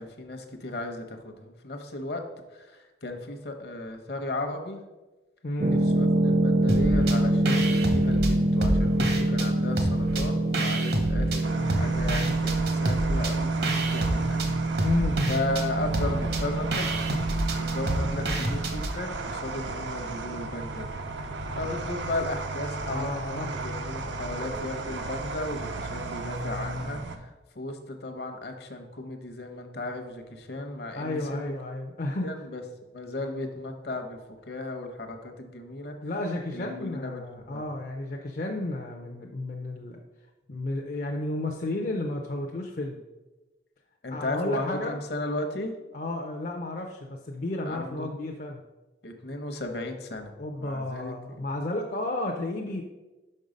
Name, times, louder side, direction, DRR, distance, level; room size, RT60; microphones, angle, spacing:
voice 1, 0.0-2.2 2.5-4.8 5.7-14.5 15.3-16.9 17.5-20.9 21.5-31.5 32.2-32.6 32.9-34.2 34.5-36.0 36.5-37.6 44.0-45.7 47.7-48.1 49.0-50.3 50.6-51.5, left 2 dB, 60° left, 6 dB, 0.9 m, -35 dB
voice 2, 5.4-5.8 14.8-15.2 22.8-23.5 30.9-32.3 36.0-40.0 40.5-43.0 44.1-45.0 45.9-48.6 50.4-52.8, left 2 dB, 45° left, 1 dB, 0.5 m, -32 dB
sound 1, 5.6-18.8, right 1 dB, 35° right, 0.4 m, -26 dB
sound 2, 6.7-7.2 7.5-9.5 9.8-11.4 11.7-18.9, right 1 dB, 60° right, 0.9 m, -29 dB
sound 3, 11.4-27.2, right 2 dB, 85° right, 0.7 m, -35 dB
5.7 x 5.4 x 5.1 m, 1.1 s
head